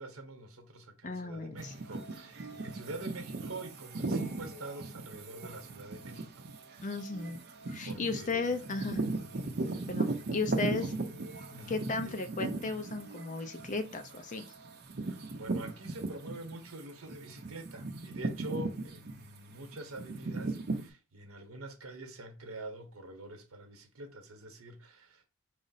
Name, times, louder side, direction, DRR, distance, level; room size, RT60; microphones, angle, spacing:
voice 1, 0.0-6.5 7.8-8.6 9.2-9.7 10.3-10.5 10.8-11.0 11.5-12.3 15.0-25.2, right 2 dB, 75° right, 0.9 m, -46 dB
voice 2, 1.0-1.7 6.8-7.4 7.7-9.0 9.9-10.9 11.7-14.5, left 3 dB, 35° left, 0.5 m, -35 dB
sound 1, 1.6-16.7 17.1-20.9, right 2 dB, 50° right, 0.6 m, -37 dB
4.9 x 2.0 x 4.0 m
head